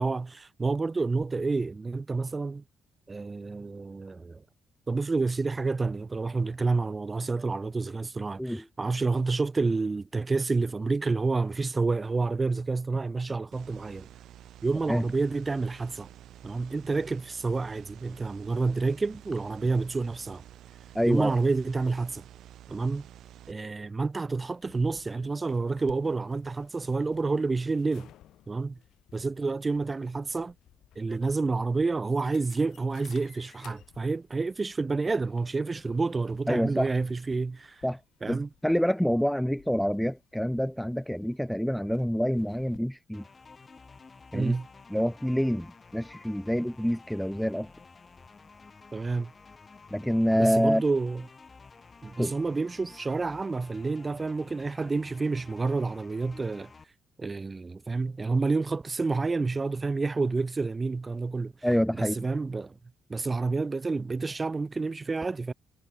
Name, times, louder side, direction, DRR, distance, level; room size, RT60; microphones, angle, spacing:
voice 1, 0.0-2.6 3.1-4.4 4.9-14.1 14.6-16.1 16.4-20.4 21.1-22.2 22.7-23.1 23.5-28.1 28.5-28.8 29.1-30.5 31.0-37.8 38.2-38.5 44.3-44.7 48.9-49.3 50.4-51.2 52.0-56.7 57.2-61.5 61.9-62.7 63.1-65.5, right 3 dB, 25° right, 0.8 m, -29 dB
sound 1, 13.5-23.5, right 12 dB, 75° right, 3.3 m, -50 dB
voice 2, 20.9-21.3 36.5-36.9 37.8-38.0 38.3-43.2 44.3-44.6 44.9-47.7 49.9-50.8 52.2-52.3 61.6-62.3, equal, ahead, 0.5 m, -27 dB
sound 2, 24.4-42.8, left 12 dB, 80° left, 2.3 m, -58 dB
sound 3, 43.1-56.8, left 4 dB, 30° left, 1.1 m, -52 dB
cardioid pair, 90°, 0 cm